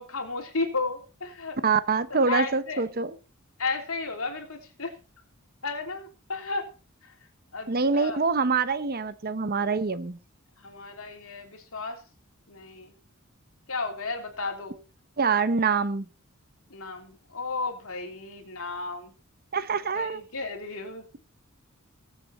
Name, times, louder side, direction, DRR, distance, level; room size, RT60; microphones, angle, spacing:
voice 1, 0.0-1.6 2.1-2.8 3.6-4.9 5.6-6.7 7.0-7.1 7.5-8.2 10.6-12.0 12.5-12.9 13.7-14.8 16.7-19.1 19.9-21.1, left 3 dB, 70° left, 3.4 m, -33 dB
voice 2, 1.6-3.1 7.7-10.2 15.2-16.1 19.5-20.2, right 4 dB, 45° right, 0.9 m, -25 dB
21.0 x 7.8 x 4.2 m
head